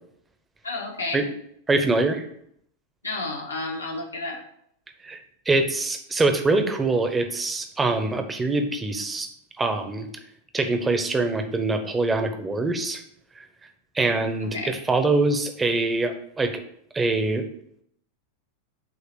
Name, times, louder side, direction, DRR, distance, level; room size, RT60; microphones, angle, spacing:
voice 1, 0.6-1.2 3.0-4.4 14.4-14.7, left 2 dB, 75° left, 0 dB, 1.4 m, -31 dB
voice 2, 1.7-2.2 5.0-5.2 5.5-9.3 9.6-10.1 10.5-13.0 13.4-13.5 13.9-16.6 16.9-17.5, right 3 dB, 15° right, 6 dB, 0.9 m, -24 dB
7.9 x 2.9 x 6.0 m, 0.70 s
figure-of-eight pair, 90°, 0 cm